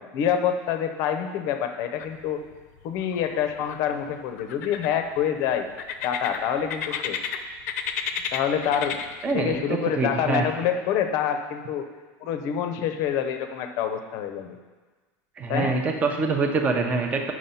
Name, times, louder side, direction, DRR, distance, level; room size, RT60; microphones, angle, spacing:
voice 1, 0.0-2.4 2.8-5.7 6.0-7.2 8.3-9.0 9.3-11.9 12.2-14.5 15.5-15.8, left 8 dB, 40° left, 7 dB, 0.7 m, -26 dB
sound 1, 2.0-2.6 2.8-3.8 4.4-5.2 5.8-7.4 7.7-9.4, left 8 dB, 90° left, 0.8 m, -32 dB
voice 2, 9.2-10.4 15.4-17.3, right 3 dB, 20° right, 3 dB, 0.7 m, -25 dB
9.1 x 6.2 x 5.6 m, 1.4 s
supercardioid pair, 180°, 8 cm